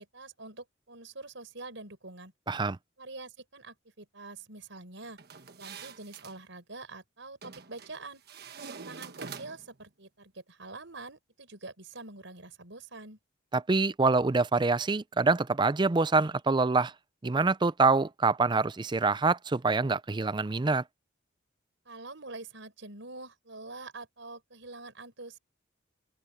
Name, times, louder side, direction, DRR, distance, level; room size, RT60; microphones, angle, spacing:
voice 1, 0.0-2.3 3.0-5.2 5.6-8.2 8.7-13.2 21.8-25.4, right 3 dB, 75° right, 4.8 m, -45 dB
voice 2, 2.5-2.8 13.5-16.9 17.2-20.8, right 3 dB, 25° right, 0.5 m, -25 dB
sound 1, 5.2-6.4 7.4-7.9 8.3-9.8, right 5 dB, 55° right, 1.4 m, -45 dB
open air
head